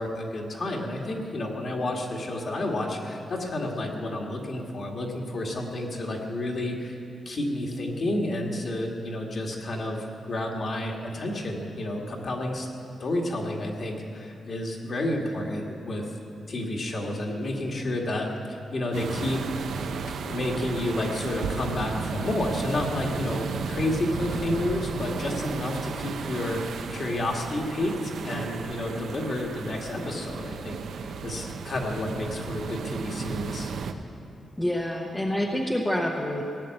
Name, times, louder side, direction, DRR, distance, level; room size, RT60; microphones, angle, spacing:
voice 1, 0.0-7.0 7.3-12.7 13.0-16.1 16.5-19.6 20.2-33.7, left 1 dB, 40° left, 0 dB, 1.9 m, -30 dB
sound 1, 18.9-33.9, right 6 dB, 70° right, 0.8 m, -34 dB
voice 2, 34.6-36.4, left 1 dB, 10° left, 0 dB, 0.9 m, -27 dB
17.5 x 10.0 x 7.8 m, 2.9 s
wide cardioid pair, 165°, 0 cm